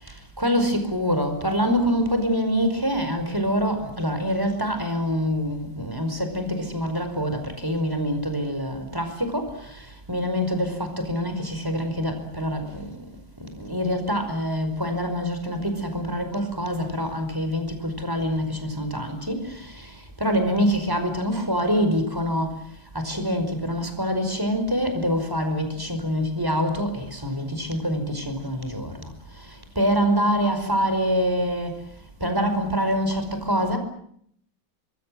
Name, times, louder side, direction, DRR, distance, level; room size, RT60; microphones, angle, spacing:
voice 1, 0.4-12.9 13.4-19.9 20.2-22.6 22.9-29.1 29.8-31.8 32.2-33.8, equal, 10° right, 7 dB, 5.1 m, -25 dB
26.0 x 22.0 x 7.7 m, 0.68 s
omnidirectional pair, 2.2 m